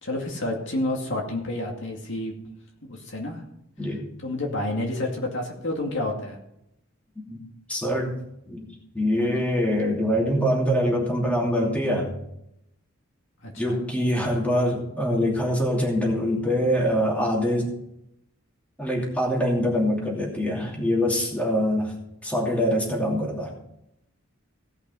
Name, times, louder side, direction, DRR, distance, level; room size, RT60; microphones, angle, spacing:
voice 1, 0.0-2.4 2.8-3.4 4.2-6.4 13.4-13.8, left 1 dB, 65° left, 0 dB, 2.3 m, -29 dB
voice 2, 7.7-8.2 8.5-8.7 8.9-12.2 13.6-17.7 18.8-21.9 22.2-23.5, equal, 5° left, -2 dB, 2.7 m, -24 dB
17.5 x 5.9 x 5.5 m, 0.81 s
head